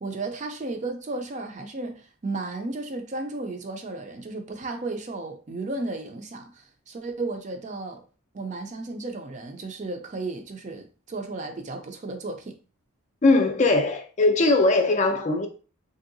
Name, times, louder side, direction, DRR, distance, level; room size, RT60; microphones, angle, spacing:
voice 1, 0.0-8.0 8.3-12.6, right 2 dB, 35° right, 0.4 m, -34 dB
voice 2, 13.2-15.5, left 2 dB, 35° left, 0.4 m, -20 dB
3.4 x 2.7 x 2.6 m
head